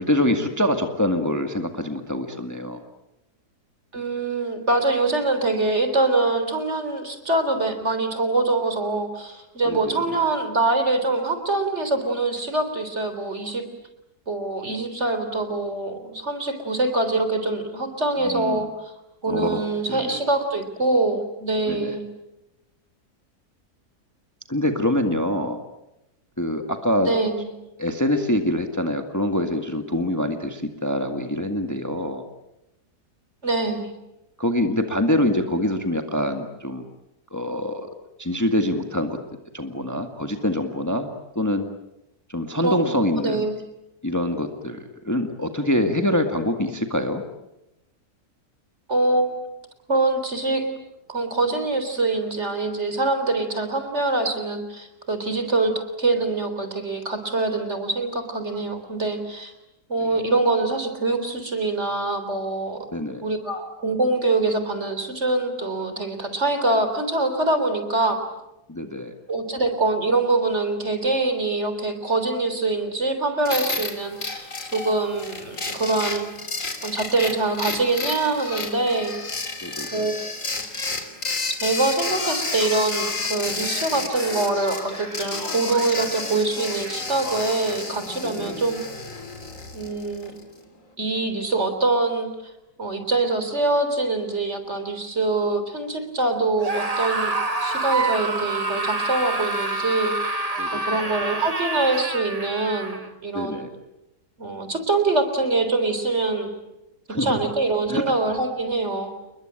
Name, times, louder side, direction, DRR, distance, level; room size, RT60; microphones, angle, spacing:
voice 1, 0.0-2.8 9.7-10.2 18.2-18.7 19.3-20.2 21.7-22.0 24.5-25.6 26.4-27.1 27.8-32.2 34.4-36.8 37.3-37.9 38.2-39.2 39.5-41.1 41.4-41.7 42.3-43.5 44.0-47.2 60.0-60.2 62.9-63.2 68.7-69.1 79.6-80.1 88.4-88.6 100.6-101.0 103.3-103.7 107.1-107.4 107.9-108.0, left 1 dB, 10° left, 5 dB, 1.8 m, -25 dB
voice 2, 3.9-13.7 14.3-18.9 19.2-22.0 27.1-27.5 33.4-33.9 42.6-42.9 43.2-43.6 48.9-49.5 49.9-50.7 51.1-59.5 59.9-62.8 63.2-68.2 69.3-76.3 76.8-79.1 79.9-80.2 81.6-88.8 89.7-90.3 91.0-92.3 92.8-97.3 97.6-100.4 100.7-103.0 103.2-103.7 104.4-106.6 107.2-109.1, right 2 dB, 45° right, 8 dB, 4.0 m, -24 dB
sound 1, 73.4-90.4, left 3 dB, 50° left, 3.6 m, -31 dB
Male speech man speaking, 81.9-87.7, left 1 dB, 75° left, 6.5 m, -38 dB
Screaming, 96.6-103.1, right 3 dB, 25° right, 2.0 m, -27 dB
29.5 x 21.5 x 8.9 m, 0.92 s
omnidirectional pair, 1.7 m